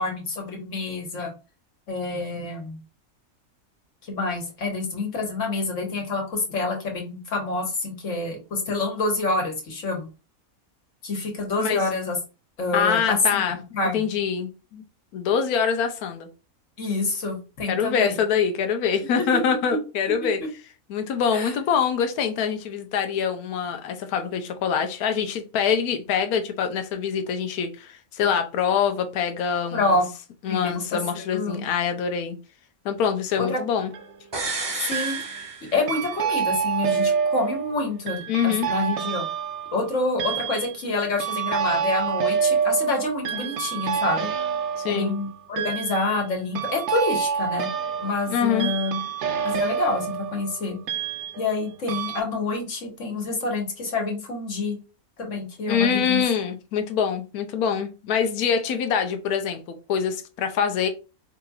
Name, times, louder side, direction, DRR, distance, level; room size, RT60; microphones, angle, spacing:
voice 1, 0.0-1.3 1.9-2.8 4.0-10.1 11.0-12.2 12.6-13.4 13.7-14.1 16.8-18.2 19.2-19.4 20.2-20.3 21.3-21.5 29.7-30.1 30.5-31.7 33.4-33.6 34.8-35.2 35.7-39.3 39.7-44.3 44.9-47.7 48.0-49.0 49.4-50.8 51.4-54.8 55.2-56.2, left 2 dB, 60° left, 2 dB, 1.5 m, -27 dB
voice 2, 12.7-13.6 13.9-14.8 15.1-16.3 17.7-20.4 20.9-29.9 30.4-32.4 32.8-33.9 38.3-38.7 44.8-45.2 48.3-48.7 55.7-60.9, left 7 dB, 90° left, 7 dB, 1.1 m, -24 dB
sound 1, 33.6-34.1 34.9-35.5 35.9-51.6 51.9-52.2, right 7 dB, 60° right, 0.8 m, -28 dB
sound 2, 34.3-36.3 36.6-36.7, right 3 dB, 30° right, 0.5 m, -32 dB
4.9 x 2.9 x 2.3 m, 0.31 s
omnidirectional pair, 1.5 m